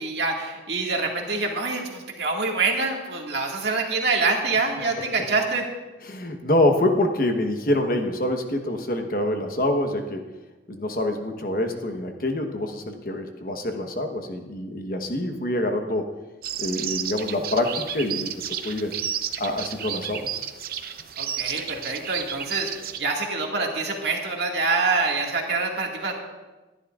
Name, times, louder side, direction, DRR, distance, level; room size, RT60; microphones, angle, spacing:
voice 1, 0.0-5.7 21.2-22.7 23.0-26.2, right 3 dB, 70° right, 0 dB, 2.0 m, -25 dB
voice 2, 6.1-10.3 10.7-16.1 16.6-18.9 19.4-20.5, left 1 dB, 50° left, 5 dB, 1.2 m, -26 dB
sound 1, 16.4-23.0, right 9 dB, 55° right, 0.7 m, -32 dB
23.5 x 11.0 x 2.5 m, 1.2 s
head